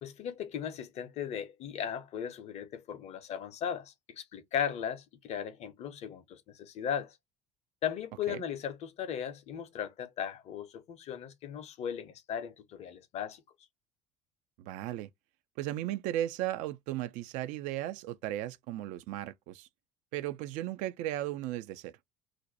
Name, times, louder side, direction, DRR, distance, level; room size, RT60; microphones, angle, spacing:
voice 1, 0.0-7.2 7.8-13.4, left 8 dB, 45° left, 0.7 m, -37 dB
voice 2, 14.6-15.1 15.6-19.7 20.1-21.9, right 13 dB, 55° right, 0.4 m, -36 dB
2.6 x 2.2 x 3.9 m
figure-of-eight pair, 65°, 15 cm